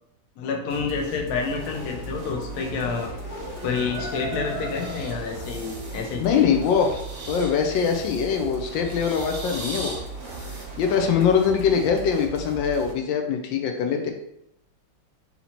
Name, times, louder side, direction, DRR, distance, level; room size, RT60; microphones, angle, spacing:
voice 1, 0.4-3.1 3.6-6.5, left 5 dB, 65° left, 2 dB, 1.1 m, -29 dB
sound 1, 0.7-12.9, right 4 dB, 65° right, 1.0 m, -38 dB
sound 2, 1.6-12.2, right 1 dB, 40° left, 1.3 m, -40 dB
sound 3, 4.7-6.2 6.6-8.4 8.8-10.6, right 2 dB, 45° right, 0.8 m, -40 dB
voice 2, 6.2-7.0 7.3-10.0 10.8-14.1, left 7 dB, 80° left, 4 dB, 1.3 m, -22 dB
4.1 x 2.8 x 4.3 m, 0.80 s
omnidirectional pair, 2.0 m